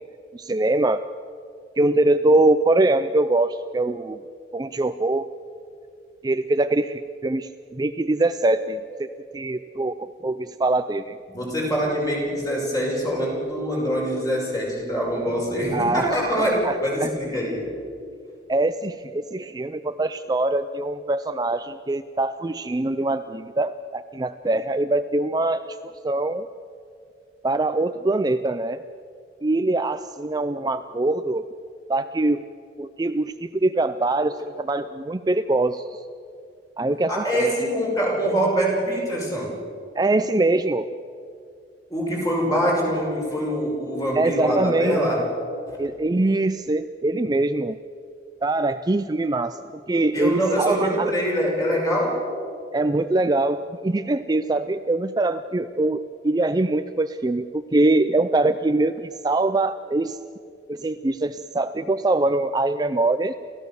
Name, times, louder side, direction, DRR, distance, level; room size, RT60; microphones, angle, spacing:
voice 1, 0.3-1.0 1.8-4.2 4.5-5.3 6.2-9.1 9.3-11.2 15.7-17.1 18.5-25.8 26.0-26.5 27.4-28.8 29.4-31.4 31.9-32.4 32.8-36.0 36.8-37.5 39.9-40.9 44.2-45.0 45.8-47.8 48.4-49.6 49.9-51.1 52.7-60.2 60.7-63.3, right 2 dB, 20° right, 10 dB, 0.4 m, -23 dB
voice 2, 11.3-17.7 37.1-39.5 41.9-45.2 45.7-45.8 50.1-52.2, equal, 20° left, -2 dB, 6.2 m, -24 dB
29.5 x 14.5 x 7.0 m, 2.4 s
head